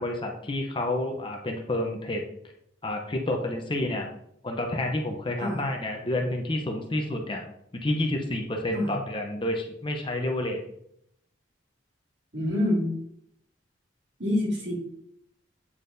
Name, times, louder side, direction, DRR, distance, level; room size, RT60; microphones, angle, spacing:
voice 1, 0.0-2.2 2.8-4.1 4.4-7.4 7.7-10.6, left 1 dB, 25° left, 2 dB, 0.6 m, -29 dB
voice 2, 12.3-12.9 14.2-14.7, left 1 dB, 60° right, -4 dB, 2.4 m, -26 dB
8.4 x 4.3 x 2.6 m, 0.73 s
head